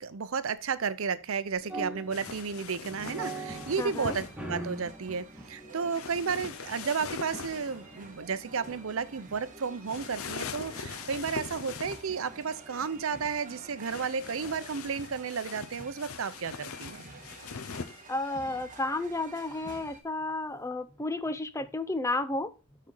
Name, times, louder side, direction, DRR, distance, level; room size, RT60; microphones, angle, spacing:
voice 1, 0.0-17.0, right 5 dB, 70° right, 0.6 m, -33 dB
sound 1, 1.5-14.8, right 2 dB, 5° right, 1.5 m, -45 dB
sound 2, 2.1-4.3 5.9-7.8 9.9-12.2 13.8-18.0, left 6 dB, 85° left, 0.7 m, -41 dB
voice 2, 3.8-4.2 18.1-22.5, left 2 dB, 15° left, 0.5 m, -32 dB
sound 3, 4.0-20.0, right 3 dB, 40° right, 1.5 m, -51 dB
12.5 x 4.2 x 3.8 m
head